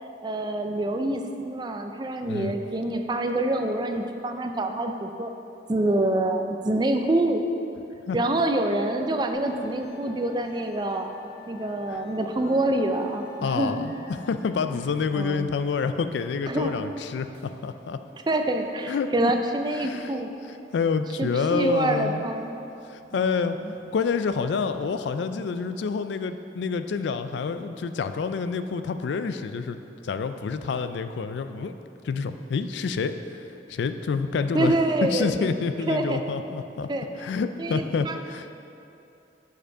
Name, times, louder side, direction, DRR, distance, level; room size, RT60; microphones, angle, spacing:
voice 1, 0.0-5.3 5.7-7.4 8.1-11.1 11.5-13.8 15.1-15.5 16.5-16.7 18.3-20.3 21.2-22.5 23.1-23.7 34.5-35.5 35.9-36.2 36.9-37.1 37.6-38.2, right 1 dB, 25° right, 5 dB, 0.4 m, -26 dB
Musical instrument, 9.3-24.8, left 3 dB, 55° left, 1.8 m, -50 dB
voice 2, 13.4-18.0 18.9-19.3 19.8-20.1 20.7-22.3 22.9-23.6 23.9-31.7 32.0-34.7 35.0-36.9 37.2-38.5, left 5 dB, 75° left, 10 dB, 0.3 m, -28 dB
6.7 x 5.2 x 5.4 m, 2.8 s
head